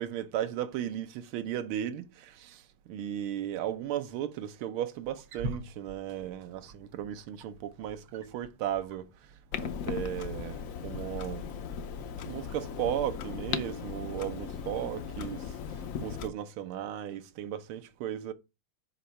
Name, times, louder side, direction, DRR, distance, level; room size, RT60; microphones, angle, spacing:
voice 1, 0.0-11.5 12.2-18.3, right 11 dB, 80° right, 1.6 m, -36 dB
Wild animals, 5.0-13.5, right 1 dB, 55° right, 1.2 m, -47 dB
Clock, 9.5-16.3, left 7 dB, 85° left, 0.7 m, -37 dB
5.2 x 5.0 x 5.6 m
omnidirectional pair, 2.3 m